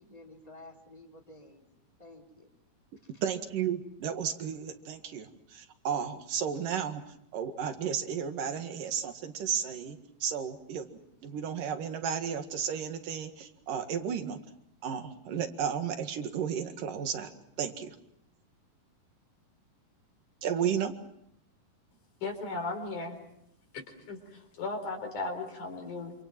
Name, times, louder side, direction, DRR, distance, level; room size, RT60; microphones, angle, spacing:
voice 1, 0.0-1.7 2.0-2.5 3.0-3.1, left 2 dB, 10° left, 1 dB, 3.3 m, -52 dB
voice 2, 3.2-10.9 11.2-14.4 14.8-17.3 17.6-18.0 20.4-20.9, right 8 dB, 70° right, 7 dB, 3.4 m, -33 dB
voice 3, 22.2-23.2 23.7-26.1, left 3 dB, 60° left, 5 dB, 5.7 m, -36 dB
27.5 x 27.0 x 6.1 m, 0.75 s
omnidirectional pair, 4.1 m